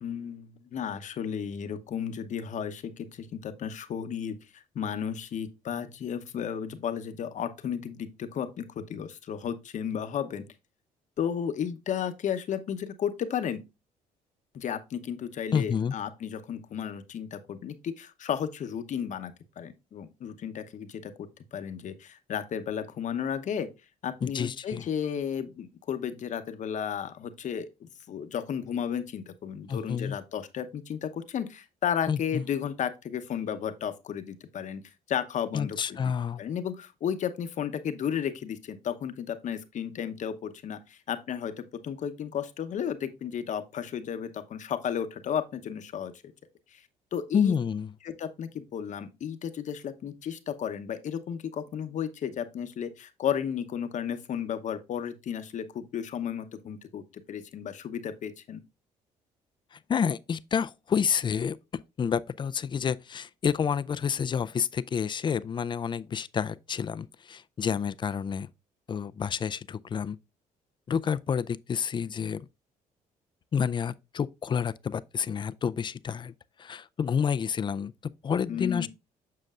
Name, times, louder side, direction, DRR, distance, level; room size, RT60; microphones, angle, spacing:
voice 1, 0.0-10.4 11.2-13.6 14.5-23.7 24.0-34.8 35.1-36.1 36.4-46.1 46.7-46.8 47.1-47.6 48.0-58.6 78.5-78.9, left 8 dB, 55° left, 0.8 m, -33 dB
voice 2, 15.5-15.9 24.2-24.9 29.7-30.2 32.1-32.4 35.5-36.4 47.3-47.9 59.7-61.6 62.0-68.5 68.9-70.2 70.9-72.5 73.5-76.3 76.6-77.9 78.2-78.9, left 7 dB, 35° left, 0.4 m, -29 dB
7.6 x 6.3 x 2.4 m
cardioid pair, 85°, 15 cm